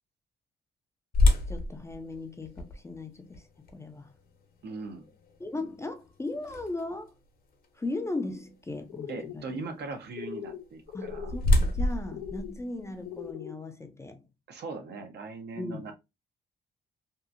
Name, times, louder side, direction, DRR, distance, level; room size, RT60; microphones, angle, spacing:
sound 1, 1.1-7.1 7.6-7.7 8.3-8.6 10.6-13.3, left 2 dB, 45° left, 0.8 m, -29 dB
voice 1, 1.5-4.1 5.4-7.1 7.7-9.6 10.9-14.3 15.5-15.9, left 2 dB, 15° left, 0.5 m, -37 dB
voice 2, 4.6-5.1 9.1-11.3 14.5-15.9, right 3 dB, 55° right, 0.7 m, -39 dB
sound 2, 8.9-9.4 10.1-10.6 10.9-11.4 12.1-12.5 13.0-13.6, left 9 dB, 65° left, 0.4 m, -40 dB
2.7 x 2.4 x 2.5 m
cardioid pair, 90°, 20 cm